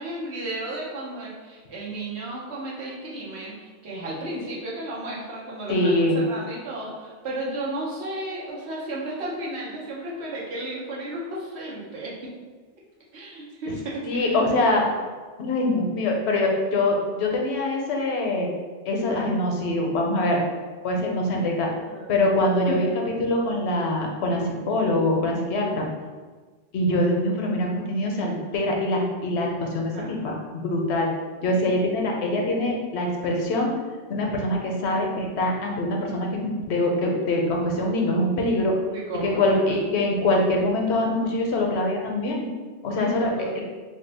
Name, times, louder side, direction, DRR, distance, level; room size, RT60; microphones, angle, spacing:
voice 1, 0.0-12.3 13.1-14.4 21.7-22.2 22.7-22.8 29.9-30.1 38.9-39.4 43.4-43.5, right 1 dB, 75° right, -4 dB, 1.0 m, -33 dB
voice 2, 5.7-6.2 14.0-14.9 15.4-18.5 18.9-20.4 20.8-21.7 22.1-25.9 26.7-31.1 31.4-33.7 34.1-38.8 39.2-42.5 42.8-43.6, left 1 dB, 75° left, 0 dB, 0.9 m, -24 dB
2.6 x 2.0 x 3.9 m, 1.4 s
omnidirectional pair, 1.1 m